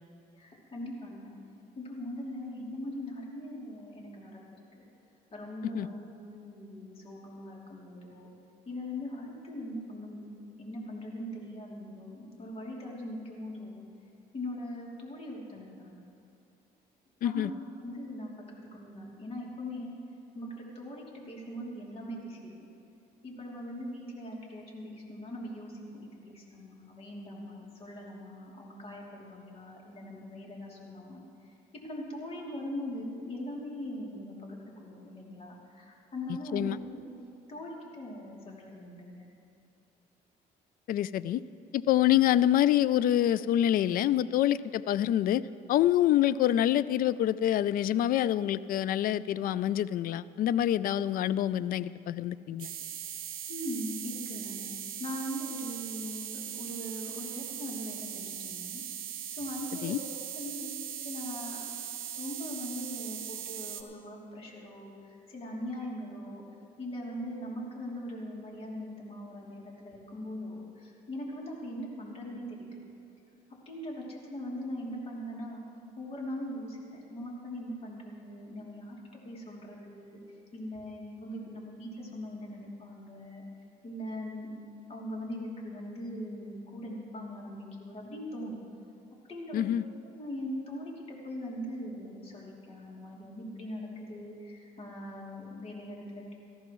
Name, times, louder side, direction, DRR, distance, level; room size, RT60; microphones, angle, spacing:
voice 1, 0.4-1.3 1.8-4.4 5.3-8.3 8.7-10.2 10.6-13.8 14.3-16.0 17.2-17.5 17.8-18.3 18.7-20.0 20.3-22.5 23.2-31.2 31.7-37.0 37.5-39.3 53.5-54.6 55.0-58.8 59.3-61.6 62.2-66.4 66.8-72.7 73.6-75.6 76.0-79.0 79.2-80.2 80.5-83.4 83.8-84.5 84.9-88.6 89.3-89.6 90.1-96.3, left 1 dB, 35° left, -3 dB, 2.9 m, -41 dB
voice 2, 17.2-17.5 36.5-36.8 40.9-41.4 41.7-45.4 45.7-52.7 59.8-60.0 89.5-89.8, left 12 dB, 55° left, 17 dB, 0.4 m, -26 dB
sound 1, 52.6-63.8, right 10 dB, 60° right, 0.9 m, -40 dB
18.5 x 14.0 x 3.1 m, 2.6 s
cardioid pair, 110°, 17 cm